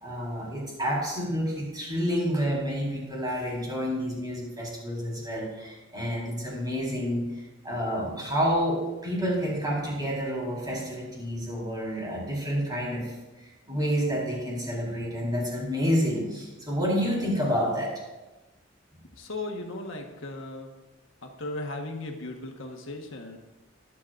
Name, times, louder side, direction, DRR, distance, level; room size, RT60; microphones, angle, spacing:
voice 1, 0.0-7.2 7.6-13.1 13.7-17.9, equal, 20° right, -5 dB, 4.3 m, -29 dB
voice 2, 19.1-20.7 21.2-23.4, left 2 dB, 80° left, 3 dB, 1.4 m, -37 dB
21.0 x 8.4 x 2.6 m, 1.1 s
head